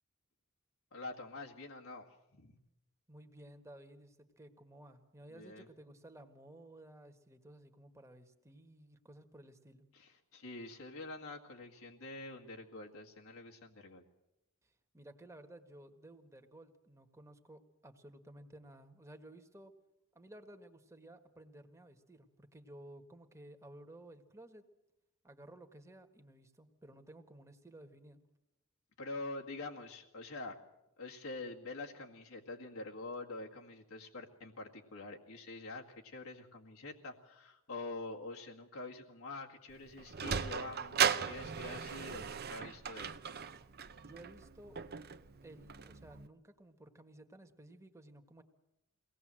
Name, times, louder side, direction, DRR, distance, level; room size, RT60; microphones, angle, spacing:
voice 1, 0.9-2.1 2.3-2.6 5.3-5.7 9.9-14.0 29.0-30.6 31.0-43.2, left 2 dB, 85° left, -1 dB, 2.1 m, -46 dB
voice 2, 3.1-9.8 14.6-19.7 20.1-24.7 25.2-28.2 44.0-44.8 45.4-48.4, right 1 dB, 15° right, 6 dB, 1.6 m, -55 dB
Sliding door, 39.7-46.3, right 7 dB, 50° right, 0.8 m, -37 dB
23.0 x 18.0 x 7.7 m, 0.91 s
head